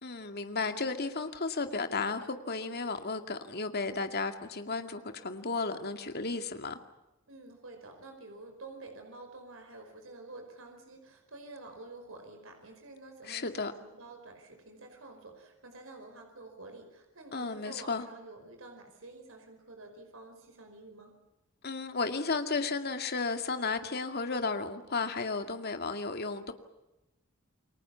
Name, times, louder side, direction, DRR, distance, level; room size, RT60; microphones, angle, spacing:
voice 1, 0.0-6.8 13.2-13.7 17.3-18.1 21.6-26.5, left 4 dB, 50° left, 2.2 m, -33 dB
voice 2, 7.3-21.1, right 2 dB, 70° right, 5.1 m, -49 dB
29.0 x 23.0 x 7.1 m
head